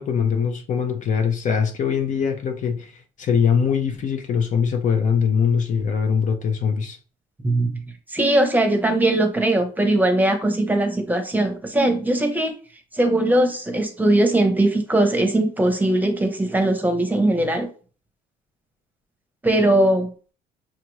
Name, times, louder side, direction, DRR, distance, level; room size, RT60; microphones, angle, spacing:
voice 1, 0.0-7.0, left 6 dB, 50° left, 0.7 m, -22 dB
voice 2, 7.4-7.8 8.1-12.5 12.9-17.7 19.4-20.1, right 1 dB, 10° right, 0.8 m, -20 dB
5.7 x 2.5 x 3.1 m
cardioid pair, 110°, 17 cm